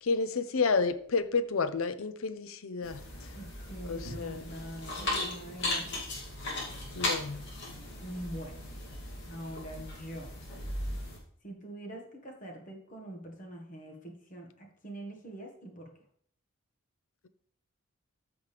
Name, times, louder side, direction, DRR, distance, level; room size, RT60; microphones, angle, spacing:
voice 1, 0.0-3.0 3.9-4.5 7.0-7.4, left 4 dB, 70° left, 12 dB, 0.6 m, -30 dB
sound 1, 2.8-11.2, left 2 dB, 50° left, 2.6 m, -37 dB
voice 2, 3.3-6.0 8.0-8.6 9.2-10.4 11.4-15.9, right 1 dB, 35° left, 1 dB, 1.6 m, -44 dB
13.5 x 5.2 x 3.4 m, 0.62 s
head